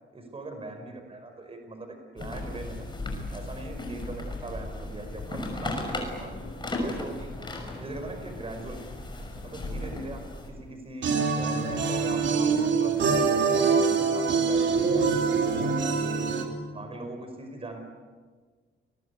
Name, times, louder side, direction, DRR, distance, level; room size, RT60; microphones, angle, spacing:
voice 1, 0.1-2.9 3.3-7.3 7.8-8.8 9.4-16.3 16.7-17.8, right 2 dB, 30° right, 5 dB, 5.0 m, -40 dB
sound 1, 2.2-10.5, left 2 dB, 25° left, 6.3 m, -36 dB
sound 2, 11.0-16.4, right 5 dB, 70° right, 3.5 m, -24 dB
29.5 x 22.0 x 8.3 m, 1.5 s
cardioid pair, 125°, 20 cm